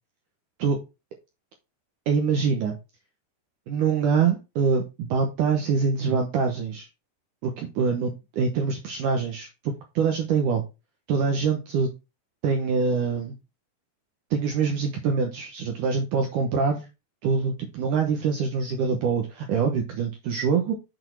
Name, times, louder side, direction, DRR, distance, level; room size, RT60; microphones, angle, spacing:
voice 1, 2.1-2.7 3.7-6.9 7.4-10.6 11.1-11.9 12.4-13.4 14.3-16.9 17.2-20.7, right 5 dB, 70° right, 4 dB, 2.0 m, -24 dB
8.0 x 4.5 x 4.6 m, 0.27 s
omnidirectional pair, 4.8 m